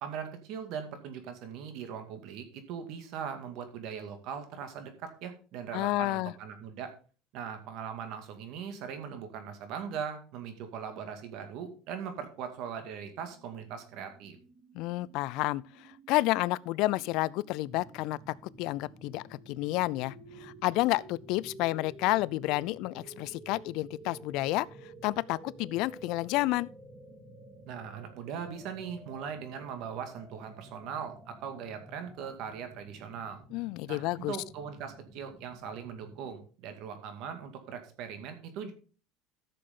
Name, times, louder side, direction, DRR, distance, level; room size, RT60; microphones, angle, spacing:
voice 1, 0.0-6.9 7.3-14.4 27.7-33.4 33.9-38.7, right 7 dB, 60° right, 2.2 m, -40 dB
voice 2, 5.7-6.3 14.7-26.7 33.5-34.4, left 19 dB, 65° left, 0.4 m, -30 dB
sound 1, 13.4-32.3, right 2 dB, 10° right, 2.5 m, -53 dB
sound 2, 17.7-36.3, right 1 dB, 35° right, 4.3 m, -55 dB
13.5 x 6.7 x 3.8 m
supercardioid pair, 125°, 0 cm